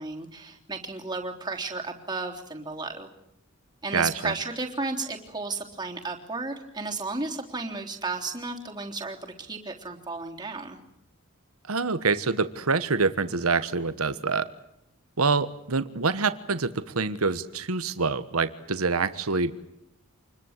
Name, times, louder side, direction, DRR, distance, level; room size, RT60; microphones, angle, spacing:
voice 1, 0.0-3.1 3.8-10.8, right 3 dB, 20° right, 1 dB, 3.5 m, -33 dB
voice 2, 3.9-4.3 11.7-14.5 15.2-19.6, right 4 dB, 90° right, 12 dB, 1.3 m, -26 dB
28.0 x 21.5 x 8.1 m, 0.78 s
head